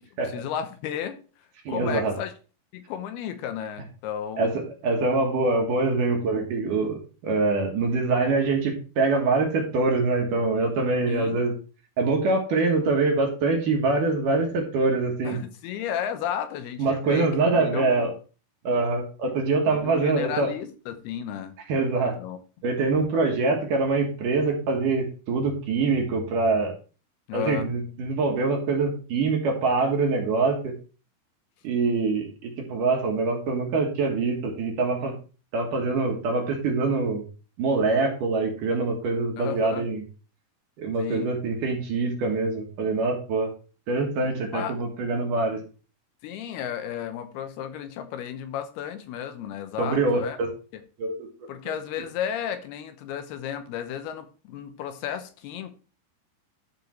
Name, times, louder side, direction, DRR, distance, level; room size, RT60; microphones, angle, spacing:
voice 1, 0.3-1.1 1.7-2.3 2.7-4.6 11.1-11.4 15.2-18.1 19.7-21.6 22.2-22.4 27.3-27.7 39.4-39.9 41.0-41.3 44.5-44.8 46.2-50.4 51.5-55.7, left 9 dB, 80° left, 2.7 m, -33 dB
voice 2, 1.7-2.1 4.4-4.5 4.8-11.5 12.0-15.4 16.8-18.1 18.6-20.5 21.7-22.1 22.6-26.7 27.3-30.7 31.6-35.1 35.5-37.2 37.6-40.0 40.8-43.5 43.9-45.6 49.8-50.5 51.0-51.3 51.7-51.8, right 3 dB, 65° right, 2.6 m, -24 dB
11.5 x 4.9 x 3.1 m
omnidirectional pair, 4.6 m